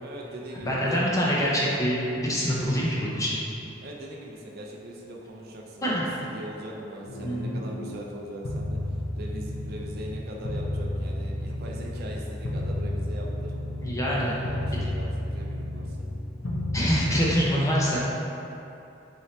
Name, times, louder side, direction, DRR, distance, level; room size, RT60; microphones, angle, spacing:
voice 1, 0.0-1.1 3.8-5.9 6.2-13.5 14.1-16.0, right 1 dB, 55° right, -1 dB, 0.4 m, -40 dB
voice 2, 0.6-3.4 5.8-6.1 7.2-7.5 13.8-14.3 14.7-14.8 16.7-18.0, equal, 15° left, -6 dB, 0.6 m, -25 dB
sound 1, 7.1-7.9 8.4-10.2 10.4-14.2 14.4-16.2 16.4-17.4, left 1 dB, 70° left, 0.5 m, -32 dB
4.1 x 2.7 x 3.1 m, 2.8 s
head